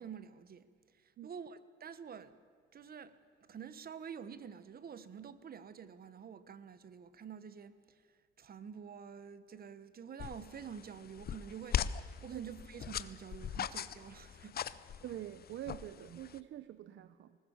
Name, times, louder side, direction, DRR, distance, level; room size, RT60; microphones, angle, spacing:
voice 1, 0.0-2.4 2.7-14.6 14.9-15.0, right 7 dB, 50° right, 1.2 m, -48 dB
sound 1, 10.2-16.4, left 9 dB, 50° left, 0.7 m, -40 dB
voice 2, 15.0-17.4, right 12 dB, 70° right, 0.7 m, -45 dB
20.0 x 19.0 x 7.3 m
cardioid pair, 90°, 20 cm